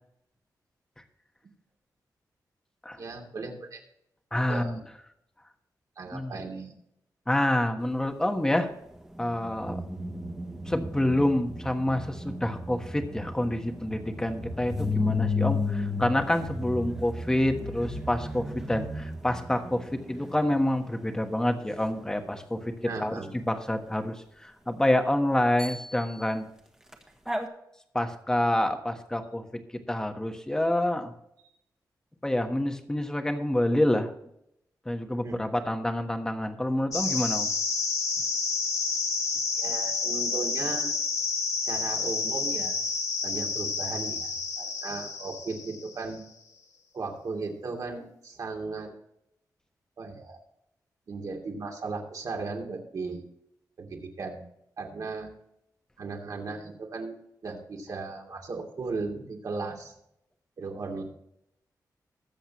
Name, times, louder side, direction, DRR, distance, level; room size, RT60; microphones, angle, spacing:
voice 1, 3.0-3.8 4.5-4.8 6.0-6.7 22.9-23.3 35.2-35.4 39.6-40.9 41.6-42.8 43.2-46.2 46.9-49.0 50.0-50.4 51.1-53.3 53.8-54.4 54.8-55.3 56.0-57.2 57.4-60.0 60.6-61.0, right 4 dB, 55° right, 0 dB, 2.8 m, -36 dB
voice 2, 4.3-4.8 6.1-6.3 7.3-8.7 9.2-9.8 10.7-26.5 27.9-29.4 29.9-31.1 32.2-34.1 34.8-37.5, left 1 dB, 10° left, 5 dB, 1.3 m, -27 dB
sound 1, 9.2-20.7 26.9-27.0 27.3-27.5, left 3 dB, 10° right, 1.5 m, -33 dB
sound 2, 36.9-46.1, left 4 dB, 50° left, 1.5 m, -30 dB
21.0 x 7.8 x 3.1 m, 0.78 s
wide cardioid pair, 170°, 7 cm